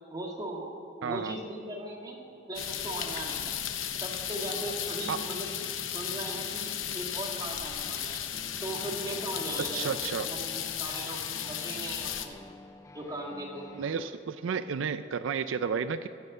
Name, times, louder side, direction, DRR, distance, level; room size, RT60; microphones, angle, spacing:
voice 1, 0.1-0.7 1.0-2.2 2.5-3.6 4.0-5.5 5.9-8.2 8.6-9.9 10.2-12.4 12.9-13.7, right 1 dB, 20° right, -1 dB, 1.9 m, -38 dB
voice 2, 1.0-1.3 5.1-5.2 9.7-10.3 13.7-16.1, right 6 dB, 80° right, 12 dB, 0.4 m, -32 dB
sound 1, 2.5-12.3, left 9 dB, 80° left, 0.8 m, -35 dB
sound 2, 8.3-14.1, left 1 dB, 15° left, 0.3 m, -51 dB
16.0 x 6.7 x 7.3 m, 2.9 s
head